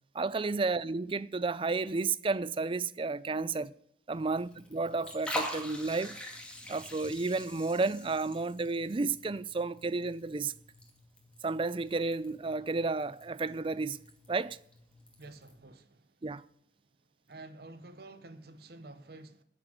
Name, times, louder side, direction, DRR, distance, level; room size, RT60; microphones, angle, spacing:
voice 1, 0.1-3.7 4.1-6.2 6.7-10.5 11.4-14.0 14.3-14.6 16.2-16.4, right 3 dB, 30° right, 0.5 m, -32 dB
Liquid, 4.1-15.6, left 1 dB, 5° left, 2.3 m, -45 dB
voice 2, 15.2-16.1 17.3-19.4, right 2 dB, 60° right, 0.9 m, -50 dB
10.0 x 7.1 x 9.4 m
head